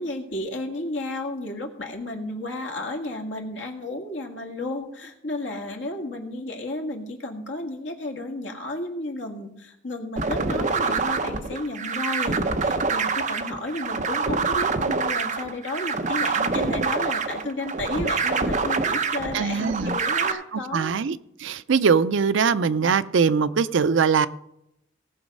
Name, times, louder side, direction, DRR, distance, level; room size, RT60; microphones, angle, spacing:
voice 1, 0.0-21.0, left 2 dB, 65° left, 3 dB, 1.8 m, -33 dB
sound 1, 10.2-20.3, right 4 dB, 40° right, 0.8 m, -26 dB
voice 2, 19.3-20.0 20.3-24.3, right 5 dB, 70° right, 15 dB, 0.4 m, -22 dB
17.5 x 6.2 x 5.3 m, 0.81 s
head